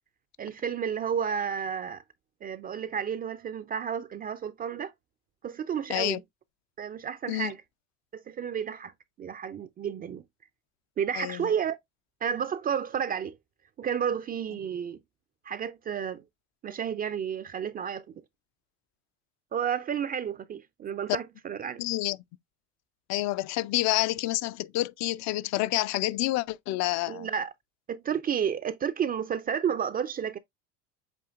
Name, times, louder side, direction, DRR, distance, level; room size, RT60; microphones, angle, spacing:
voice 1, 0.4-2.0 2.4-4.9 5.4-6.2 6.8-7.6 8.1-8.9 9.2-10.2 11.0-11.8 12.2-13.4 13.8-15.0 15.4-16.2 16.6-18.1 19.5-21.8 27.1-27.5 27.9-30.4, right 8 dB, 25° right, 0.4 m, -31 dB
voice 2, 5.9-6.2 7.3-7.5 11.2-11.5 21.8-22.2 23.1-27.3, left 17 dB, 50° left, 0.5 m, -28 dB
7.8 x 2.8 x 2.4 m
hypercardioid pair, 80°, 36 cm